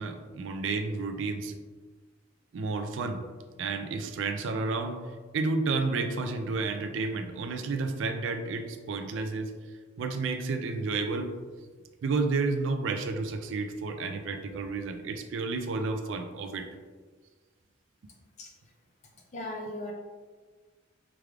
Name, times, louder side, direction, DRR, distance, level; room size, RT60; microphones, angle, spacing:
voice 1, 0.0-1.5 2.5-3.2 3.6-5.0 5.3-9.5 10.0-11.3 12.0-16.7, right 3 dB, 70° right, 6 dB, 0.4 m, -31 dB
voice 2, 19.3-19.9, left 1 dB, 35° left, 0 dB, 0.5 m, -37 dB
4.9 x 3.2 x 2.3 m, 1.4 s
head